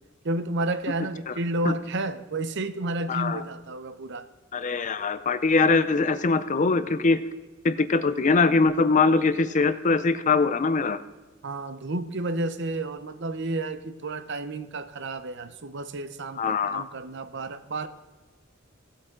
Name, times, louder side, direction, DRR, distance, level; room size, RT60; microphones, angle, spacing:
voice 1, 0.2-4.3 11.4-17.9, right 2 dB, 55° right, 12 dB, 0.7 m, -31 dB
voice 2, 3.1-3.4 4.5-7.2 7.6-11.0 16.4-16.8, left 4 dB, 35° left, 13 dB, 0.5 m, -22 dB
17.0 x 8.1 x 3.8 m, 1.2 s
head